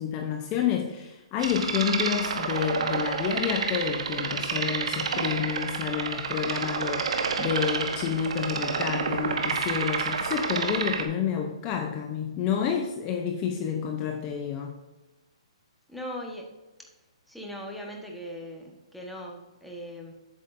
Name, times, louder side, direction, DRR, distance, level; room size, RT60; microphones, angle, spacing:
voice 1, 0.0-14.8, left 8 dB, 25° left, 3 dB, 0.7 m, -29 dB
sound 1, 1.4-11.1, right 5 dB, 70° right, 1.1 m, -29 dB
voice 2, 15.9-16.5 17.3-20.1, equal, ahead, -1 dB, 1.3 m, -39 dB
8.4 x 7.2 x 2.6 m, 1.1 s
hypercardioid pair, 150°, 3 cm